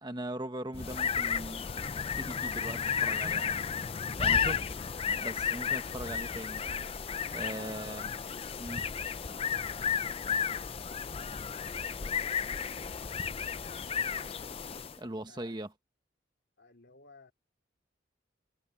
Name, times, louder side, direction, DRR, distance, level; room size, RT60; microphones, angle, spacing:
voice 1, 0.0-3.6 4.2-4.6 5.1-6.7 7.3-8.1 8.6-8.8 15.0-15.7, right 1 dB, 20° right, 1.2 m, -40 dB
sound 1, 0.7-15.0, left 7 dB, 30° left, 0.4 m, -33 dB
voice 2, 15.0-15.5 16.6-17.3, left 2 dB, 55° left, 3.7 m, -61 dB
head